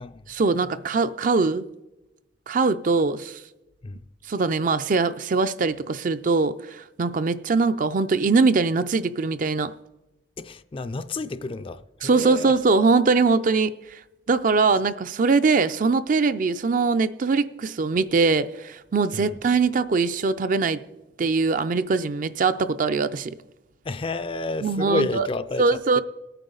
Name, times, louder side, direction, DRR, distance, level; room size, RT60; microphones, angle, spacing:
voice 1, 0.3-1.7 2.5-3.4 4.3-9.7 12.0-14.0 14.3-20.8 21.2-23.3 24.6-25.3 25.6-26.0, right 4 dB, 50° right, 0.4 m, -22 dB
voice 2, 10.4-12.5 19.1-19.3 23.8-26.0, left 3 dB, 30° left, 0.4 m, -30 dB
20.0 x 9.1 x 3.9 m
head